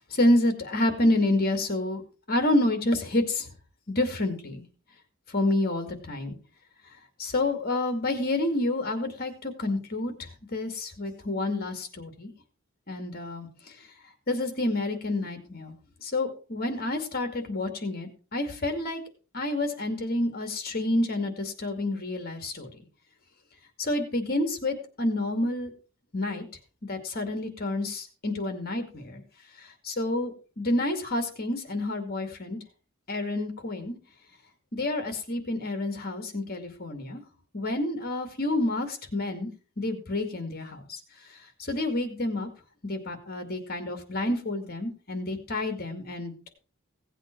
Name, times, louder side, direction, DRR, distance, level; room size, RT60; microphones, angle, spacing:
voice 1, 0.1-2.0 2.3-3.5 3.9-4.6 5.3-6.4 7.2-12.3 12.9-13.5 13.8-13.9 14.3-15.7 16.0-19.0 19.3-22.7 23.8-25.7 26.1-26.5 26.8-29.2 29.6-32.6 33.1-34.0 34.7-37.2 37.5-39.5 39.8-41.0 41.3-42.5 42.8-46.5, left 1 dB, 45° left, 6 dB, 2.3 m, -29 dB
17.0 x 8.1 x 4.6 m, 0.37 s
head